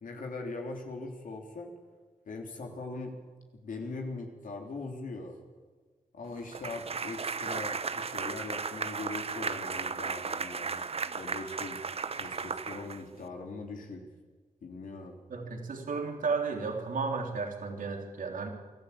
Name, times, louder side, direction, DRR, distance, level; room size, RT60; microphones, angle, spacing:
voice 1, 0.0-1.7 2.3-3.1 3.6-5.4 6.1-10.8 11.2-11.8 12.1-14.0 14.6-15.2, left 3 dB, 70° left, 1 dB, 3.4 m, -40 dB
sound 1, 6.5-13.3, right 5 dB, 45° right, 0.8 m, -35 dB
voice 2, 15.3-18.5, right 4 dB, 70° right, 2 dB, 3.5 m, -33 dB
24.0 x 12.5 x 8.7 m, 1.4 s
cardioid pair, 70°, 14 cm